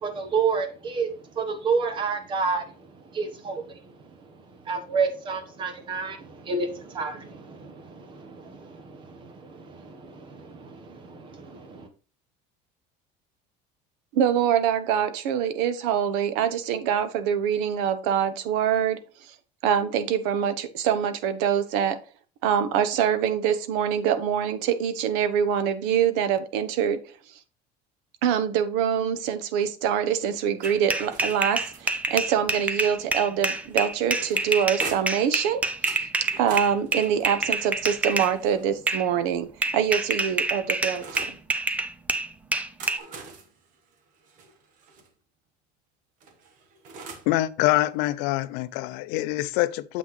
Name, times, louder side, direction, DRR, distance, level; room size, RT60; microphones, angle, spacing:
voice 1, 0.0-1.1 1.3-2.6 3.1-3.6 4.7-11.9, right 5 dB, 30° right, 1.0 m, -30 dB
voice 2, 14.1-19.0 19.6-22.0 22.4-27.0 28.2-35.6 36.4-41.0, right 8 dB, 75° right, 0.9 m, -24 dB
sound 1, 30.6-38.3 38.9-39.1 39.6-43.0, right 2 dB, 10° right, 0.4 m, -27 dB
sound 2, 30.6-32.2 33.5-35.3 35.8-38.8 39.6-41.4 42.5-45.1 46.2-47.4, right 4 dB, 50° right, 1.2 m, -44 dB
voice 3, 47.3-50.0, left 16 dB, 70° left, 0.5 m, -25 dB
7.3 x 5.8 x 3.0 m
cardioid pair, 170°, 17 cm